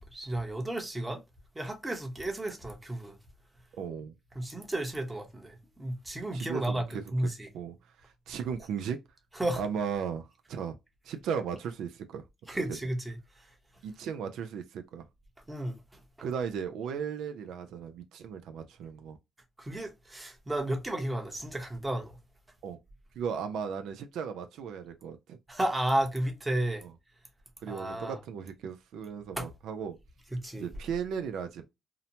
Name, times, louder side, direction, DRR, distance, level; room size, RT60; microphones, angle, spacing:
voice 1, 0.1-1.2 1.5-3.2 4.3-7.5 9.3-9.6 12.5-13.5 15.5-15.8 19.6-22.2 25.5-26.8 27.7-28.2 29.3-29.5 30.3-30.7, right 1 dB, 15° right, 0.8 m, -33 dB
voice 2, 3.8-4.2 6.3-7.0 7.5-9.0 9.6-10.8 11.0-12.2 13.8-15.1 16.2-19.2 22.6-22.8 23.2-25.4 26.8-26.9 27.6-30.0 30.6-31.7, right 7 dB, 80° right, 0.4 m, -36 dB
2.8 x 2.1 x 2.7 m
cardioid pair, 90°, 0 cm